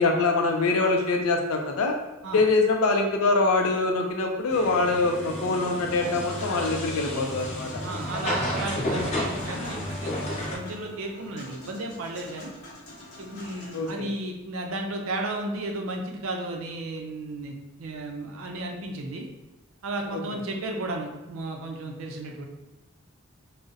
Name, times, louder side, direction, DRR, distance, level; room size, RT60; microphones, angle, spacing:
voice 1, 0.0-2.0 2.3-7.8 13.7-14.1 20.1-20.2, left 3 dB, 90° left, 3 dB, 0.4 m, -24 dB
sound 1, 4.5-10.6, left 1 dB, 30° left, 0.5 m, -32 dB
Human voice / Acoustic guitar / Piano, 5.9-13.9, left 1 dB, 50° left, 0.9 m, -44 dB
voice 2, 7.8-10.1 10.5-12.5 13.2-19.3 19.8-22.4, right 2 dB, 75° right, 2 dB, 0.5 m, -34 dB
3.9 x 2.0 x 2.4 m, 0.99 s
head